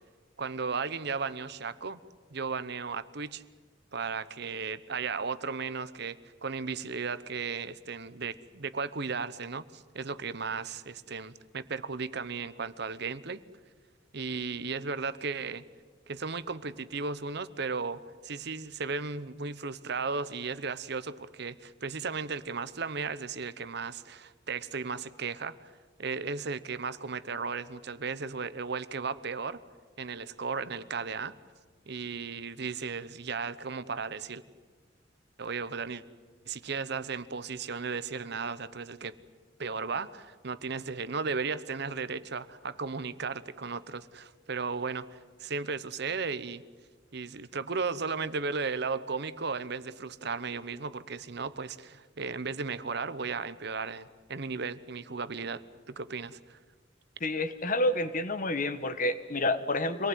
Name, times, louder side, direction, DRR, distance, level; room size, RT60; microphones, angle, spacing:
voice 1, 0.4-2.0 2.3-3.4 3.9-13.4 14.1-15.6 16.1-25.6 26.0-29.6 30.0-31.3 31.9-34.4 35.4-36.0 36.5-39.1 39.6-46.6 47.1-55.6 55.9-56.6, right 5 dB, 60° right, 14 dB, 1.0 m, -35 dB
voice 2, 57.2-60.1, left 2 dB, 45° left, 11 dB, 1.4 m, -29 dB
26.0 x 19.0 x 9.3 m, 1.5 s
head